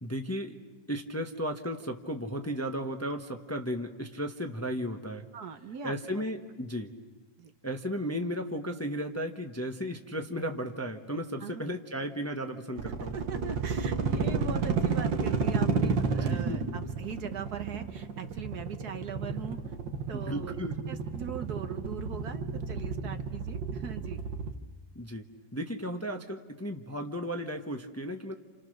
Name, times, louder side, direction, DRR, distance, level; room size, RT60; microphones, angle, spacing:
voice 1, 0.0-0.6 0.9-5.3 5.8-6.9 7.6-13.2 16.0-16.6 20.1-20.8 24.9-25.3 25.5-28.3, equal, 10° left, 4 dB, 1.0 m, -35 dB
voice 2, 5.3-6.2 7.4-7.5 11.4-11.6 13.1-19.6 20.1-20.6 20.9-24.2, right 6 dB, 60° right, 8 dB, 1.6 m, -40 dB
sound 1, 12.8-24.5, right 5 dB, 85° right, 2.1 m, -31 dB
29.5 x 28.5 x 6.6 m, 1.3 s
omnidirectional pair, 1.9 m